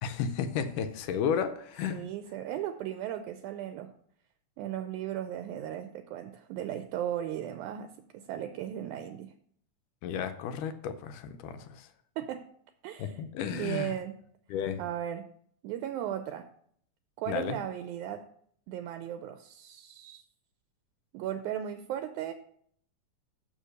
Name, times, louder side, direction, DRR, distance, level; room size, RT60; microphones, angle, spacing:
voice 1, 0.0-2.0 10.0-11.9 13.0-13.9 14.5-14.8 17.3-17.6, left 7 dB, 85° left, 10 dB, 2.3 m, -33 dB
voice 2, 1.9-4.0 4.6-9.3 12.2-12.5 12.8-13.2 13.5-14.2 14.8-15.3 15.6-16.5 17.2-18.3 18.7-20.2 21.1-22.3, right 11 dB, 80° right, 9 dB, 1.9 m, -36 dB
6.8 x 6.4 x 6.5 m, 0.64 s
omnidirectional pair, 3.6 m